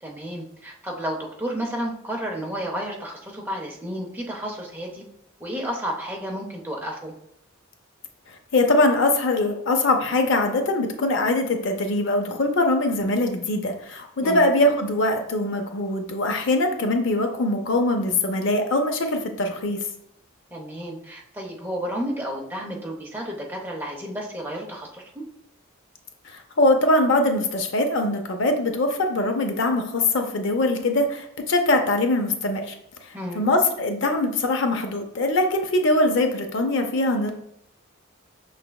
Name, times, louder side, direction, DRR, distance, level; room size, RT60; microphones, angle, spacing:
voice 1, 0.0-5.0 5.4-7.1 14.2-14.5 20.5-25.2 33.1-33.4, equal, 10° right, -1 dB, 0.6 m, -32 dB
voice 2, 8.5-19.8 26.2-32.7 33.0-37.3, left 2 dB, 60° left, 5 dB, 0.5 m, -22 dB
6.0 x 3.3 x 2.3 m, 0.74 s
head